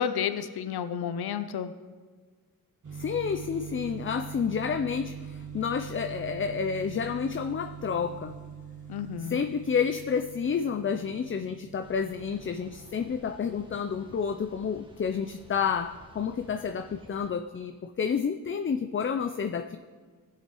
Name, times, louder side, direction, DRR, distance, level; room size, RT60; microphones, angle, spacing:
voice 1, 0.0-1.7 8.9-9.4, left 8 dB, 85° left, 11 dB, 0.5 m, -31 dB
sound 1, 2.8-15.3, right 7 dB, 50° right, 1.5 m, -44 dB
voice 2, 2.9-8.4 9.3-19.8, left 6 dB, 35° left, 9 dB, 0.4 m, -30 dB
sound 2, 11.8-17.3, equal, 15° right, 1.4 m, -53 dB
16.0 x 7.6 x 3.0 m, 1.5 s
cardioid pair, 60°, 37 cm